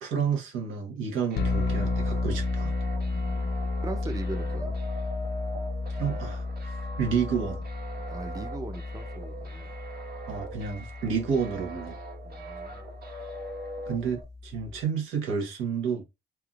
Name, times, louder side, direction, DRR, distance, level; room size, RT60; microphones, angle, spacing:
voice 1, 0.0-2.7 6.0-7.6 10.3-12.0 13.8-16.0, right 6 dB, 90° right, 1.2 m, -30 dB
sound 1, 1.3-14.2, right 2 dB, 50° right, 1.3 m, -42 dB
sound 2, 1.4-14.8, left 3 dB, 55° left, 0.5 m, -33 dB
voice 2, 3.0-3.5 3.8-4.7 8.1-9.7 12.2-12.8, right 3 dB, 20° right, 0.6 m, -40 dB
3.5 x 2.8 x 2.4 m
cardioid pair, 90°, 20 cm